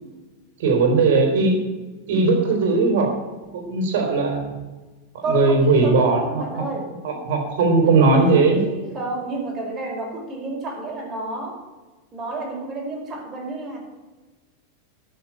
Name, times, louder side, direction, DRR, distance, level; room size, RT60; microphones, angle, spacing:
voice 1, 0.6-1.6 2.1-3.1 3.5-4.6 5.1-6.5 7.0-8.6, right 3 dB, 65° right, 4 dB, 3.7 m, -18 dB
voice 2, 5.2-6.9 7.8-11.6 12.1-13.8, right 3 dB, 35° right, 0 dB, 5.2 m, -30 dB
12.5 x 6.6 x 9.0 m, 1.2 s
hypercardioid pair, 95°, 0 cm